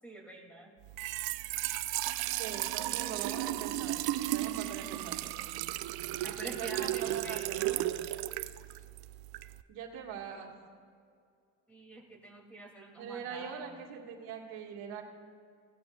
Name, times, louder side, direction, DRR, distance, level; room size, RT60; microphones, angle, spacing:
voice 1, 0.0-0.7 6.2-7.8 11.7-13.8, right 1 dB, 5° left, -1 dB, 2.6 m, -46 dB
Trickle dribble / Fill (with liquid), 0.8-9.6, right 15 dB, 65° right, 0.5 m, -35 dB
voice 2, 2.4-4.0 4.3-5.2 6.4-8.0 9.7-10.5 13.0-15.0, right 7 dB, 85° right, 0 dB, 1.8 m, -42 dB
17.5 x 13.0 x 2.4 m, 2.3 s
cardioid pair, 100°, 39 cm